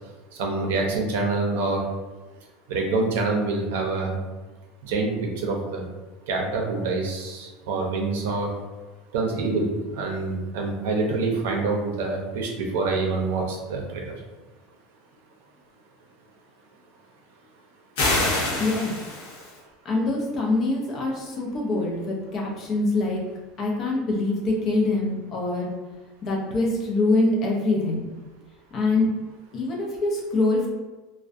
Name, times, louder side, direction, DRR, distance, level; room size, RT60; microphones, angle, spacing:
voice 1, 0.4-1.8 2.7-4.2 4.8-5.8 6.3-8.5 9.1-9.7 9.9-14.1, right 3 dB, 90° right, 1 dB, 0.5 m, -26 dB
sound 1, 18.0-19.6, left 2 dB, 75° left, 0.8 m, -25 dB
voice 2, 18.6-18.9 19.8-23.2 23.6-25.8 26.2-28.0 28.7-29.1 29.5-30.7, left 2 dB, 25° left, -1 dB, 0.4 m, -24 dB
2.4 x 2.1 x 2.5 m, 1.2 s
cardioid pair, 180°, 0 cm